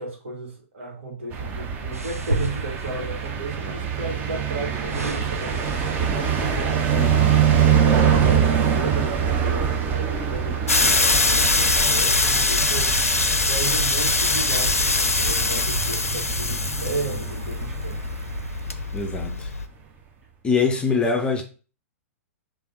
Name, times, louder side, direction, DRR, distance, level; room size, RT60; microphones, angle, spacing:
voice 1, 0.0-7.3 7.7-13.1 13.3-18.1, right 3 dB, 60° right, 1.9 m, -34 dB
sound 1, 1.3-19.3, right 8 dB, 25° right, 0.7 m, -24 dB
sound 2, 1.9-3.3 4.3-6.3 6.9-7.1, right 1 dB, 85° right, 0.6 m, -32 dB
voice 2, 6.9-7.5 18.9-19.5 20.4-21.4, left 4 dB, 10° left, 0.5 m, -24 dB
sound 3, 10.7-19.6, left 3 dB, 80° left, 0.5 m, -22 dB
3.4 x 2.6 x 4.4 m
figure-of-eight pair, 110°, 8 cm